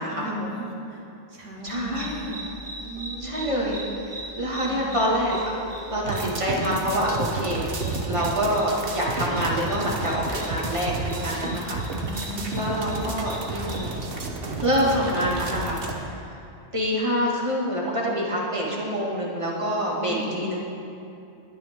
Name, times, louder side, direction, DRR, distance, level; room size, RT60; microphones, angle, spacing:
voice 1, 0.1-2.4 2.8-3.5 4.4-4.8 11.2-11.5 12.0-12.7 20.1-20.5, equal, 85° right, -3 dB, 2.3 m, -36 dB
voice 2, 1.6-2.1 3.2-3.8 4.0-5.6 5.9-7.8 8.1-11.8 12.5-14.0 14.6-16.4 16.7-20.6, equal, 25° right, -4 dB, 2.0 m, -26 dB
sound 1, 1.7-13.9, right 1 dB, 5° left, 2.0 m, -39 dB
sound 2, 6.1-15.9, right 2 dB, 50° right, 1.3 m, -31 dB
20.5 x 9.1 x 3.7 m, 2.7 s
omnidirectional pair, 1.2 m